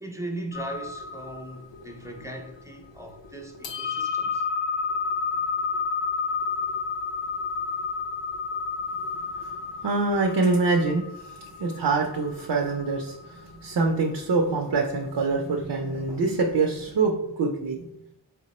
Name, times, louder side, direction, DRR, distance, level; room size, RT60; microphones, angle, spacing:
voice 1, 0.0-4.4, right 1 dB, 5° right, 0.5 m, -38 dB
sound 1, 0.5-16.9, left 5 dB, 70° left, 0.6 m, -32 dB
voice 2, 9.8-11.1 11.6-17.8, right 3 dB, 60° right, 0.6 m, -25 dB
4.3 x 2.0 x 4.1 m
wide cardioid pair, 110°, 46 cm